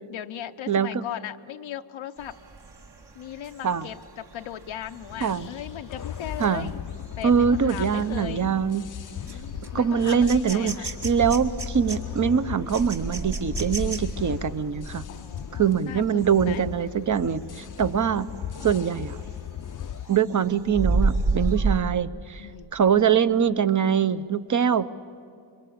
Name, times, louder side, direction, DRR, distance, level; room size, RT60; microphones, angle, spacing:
voice 1, 0.1-2.3 3.1-6.8 7.2-8.4 9.3-10.9 15.1-16.6 17.8-18.1 22.4-22.7, left 11 dB, 85° left, 8 dB, 0.8 m, -38 dB
voice 2, 0.7-1.0 3.6-3.9 5.2-5.5 6.4-6.7 7.2-8.9 9.7-15.1 15.5-18.3 18.6-19.2 20.1-24.8, right 7 dB, 40° right, 13 dB, 0.8 m, -23 dB
sound 1, 2.2-16.7 17.1-17.4 17.8-19.4 19.8-21.8, right 3 dB, 60° right, 2.3 m, -32 dB
sound 2, 5.1-20.2, left 9 dB, 45° left, 0.6 m, -37 dB
25.0 x 23.0 x 8.6 m, 2.4 s
cardioid pair, 80°, 45 cm